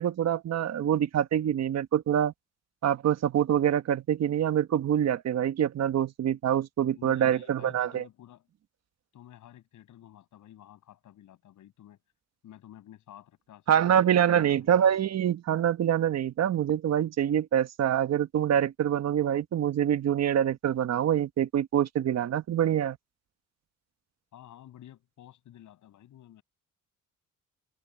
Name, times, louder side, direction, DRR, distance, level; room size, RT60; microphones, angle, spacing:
voice 1, 0.0-2.3 2.8-8.0 13.7-23.0, right 10 dB, 60° right, 1.3 m, -25 dB
voice 2, 6.9-8.5 9.1-12.0 12.4-15.1 24.3-26.4, left 12 dB, 75° left, 8.0 m, -52 dB
cardioid pair, 90°, 30 cm